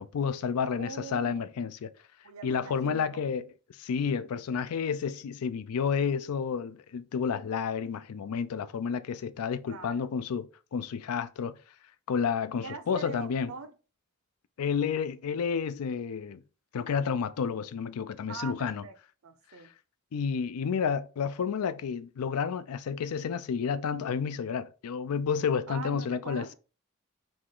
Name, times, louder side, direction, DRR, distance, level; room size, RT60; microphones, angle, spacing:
voice 1, 0.0-1.9 2.4-3.4 3.8-11.6 12.1-13.5 14.6-16.4 16.7-18.8 20.1-26.5, left 6 dB, 90° left, 0.4 m, -30 dB
voice 2, 0.7-1.4 2.2-3.3 9.7-10.1 12.6-13.7 18.3-18.9 19.2-19.7 25.7-26.5, right 4 dB, 75° right, 0.6 m, -42 dB
4.9 x 2.4 x 3.7 m
head